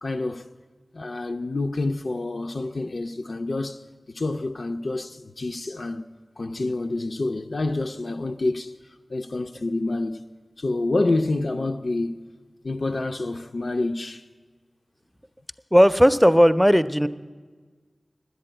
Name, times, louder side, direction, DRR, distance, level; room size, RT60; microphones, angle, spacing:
voice 1, 0.0-0.5 0.9-3.8 4.1-6.0 6.4-10.3 10.6-12.3 12.6-14.3, left 2 dB, 70° left, 0.4 m, -28 dB
voice 2, 15.7-17.1, equal, ahead, 0.4 m, -16 dB
11.0 x 8.2 x 8.8 m
wide cardioid pair, 70°, 0 cm